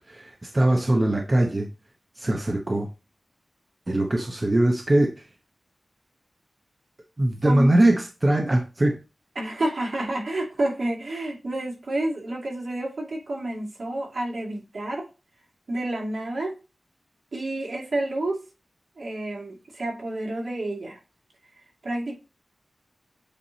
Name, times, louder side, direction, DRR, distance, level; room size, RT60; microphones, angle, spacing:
voice 1, 0.0-1.7 2.2-2.9 3.9-5.1 7.2-9.0, right 1 dB, 30° right, 0.7 m, -21 dB
voice 2, 9.4-15.1 15.7-16.6 17.3-18.4 19.0-21.0 21.8-22.2, right 1 dB, 65° right, 2.5 m, -29 dB
8.2 x 2.9 x 4.0 m
wide cardioid pair, 100°, 0 cm